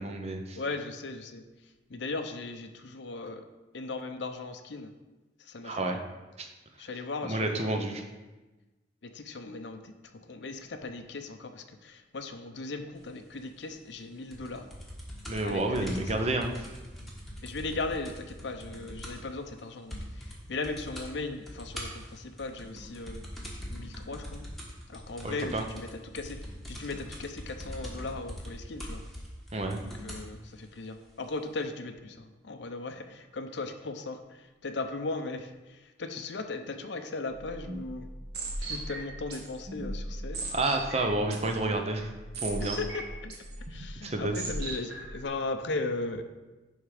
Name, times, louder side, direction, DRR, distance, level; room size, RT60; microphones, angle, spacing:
voice 1, 0.0-0.6 5.6-6.0 6.4-6.5 7.2-8.0 15.3-16.5 25.2-25.6 29.5-29.8 40.5-42.1 42.4-42.8 44.0-44.4, right 2 dB, 35° right, 4 dB, 0.7 m, -30 dB
voice 2, 0.6-1.4 1.9-3.4 3.7-4.9 5.5-6.0 6.8-8.0 9.0-14.7 15.4-16.1 17.4-23.2 23.7-24.4 24.9-26.4 26.7-29.0 30.0-38.1 38.6-40.5 42.6-43.3 43.7-46.2, left 3 dB, 65° left, 7 dB, 0.6 m, -37 dB
sound 1, 14.3-19.3 19.6-19.7 19.9-20.4 20.6-21.1 21.5-30.3 31.1-31.2, equal, ahead, 1.3 m, -42 dB
sound 2, 37.3-45.2, right 1 dB, 55° right, 1.6 m, -38 dB
11.0 x 3.6 x 4.9 m, 1.1 s
head